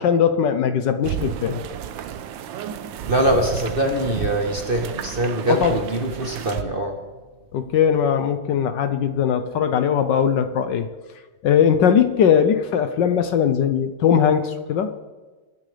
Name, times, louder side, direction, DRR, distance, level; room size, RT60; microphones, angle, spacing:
voice 1, 0.0-1.6 5.5-5.8 7.5-10.9 11.4-14.9, left 8 dB, 70° left, 9 dB, 1.3 m, -19 dB
sound 1, 1.0-6.6, right 9 dB, 70° right, 1.4 m, -31 dB
voice 2, 3.1-7.0, right 1 dB, 30° right, 3 dB, 1.2 m, -23 dB
21.5 x 10.0 x 3.4 m, 1.3 s
omnidirectional pair, 2.3 m